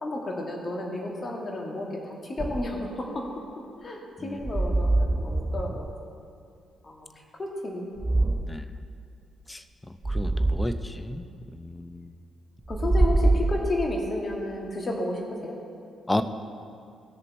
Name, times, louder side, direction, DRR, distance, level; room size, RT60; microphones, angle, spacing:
voice 1, 0.0-3.3 3.8-5.9 6.8-7.1 7.4-8.3 12.7-15.6, left 1 dB, 35° left, 0 dB, 1.9 m, -32 dB
sound 1, 2.4-2.9 4.4-6.0 8.0-8.6 10.0-10.8 12.7-14.1, right 2 dB, 25° right, 0.4 m, -25 dB
voice 2, 10.1-11.2 11.5-12.1 16.1-16.2, left 1 dB, 15° left, 10 dB, 0.6 m, -32 dB
16.0 x 6.7 x 4.4 m, 2.4 s
figure-of-eight pair, 40°, 0 cm